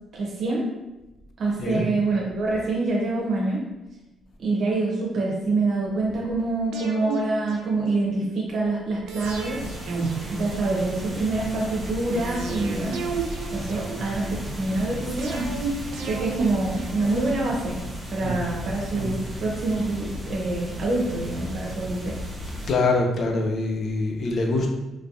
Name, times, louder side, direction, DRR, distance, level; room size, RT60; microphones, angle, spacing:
voice 1, 0.1-0.6 1.4-3.6 4.4-9.6 10.3-13.0 13.5-17.8 18.1-22.2, right 2 dB, 60° right, -3 dB, 0.9 m, -26 dB
sound 1, 6.7-8.3 9.1-11.2 12.1-14.3 15.2-17.6 18.2-19.9 20.2-20.3, right 4 dB, 85° right, 0.5 m, -33 dB
sound 2, 9.2-22.7, equal, 15° right, 1.1 m, -35 dB
voice 2, 22.7-24.7, left 3 dB, 55° left, 2 dB, 0.6 m, -24 dB
3.3 x 3.2 x 2.7 m, 1.0 s
cardioid pair, 90°, 0 cm